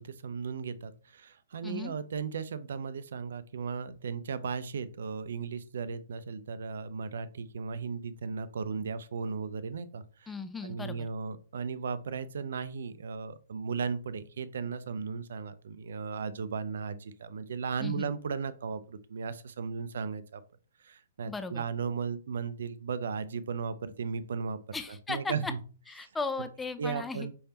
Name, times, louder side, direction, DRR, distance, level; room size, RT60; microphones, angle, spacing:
voice 1, 0.0-10.3 10.6-20.4 20.8-24.8 25.1-25.6 26.0-26.1 26.8-27.3, right 5 dB, 70° right, 15 dB, 0.5 m, -36 dB
voice 2, 1.6-1.9 10.3-11.1 17.8-18.1 21.3-21.6 24.7-25.5 25.9-27.3, left 4 dB, 10° left, 10 dB, 0.5 m, -36 dB
5.4 x 3.4 x 2.9 m, 0.39 s
hypercardioid pair, 125°, 0 cm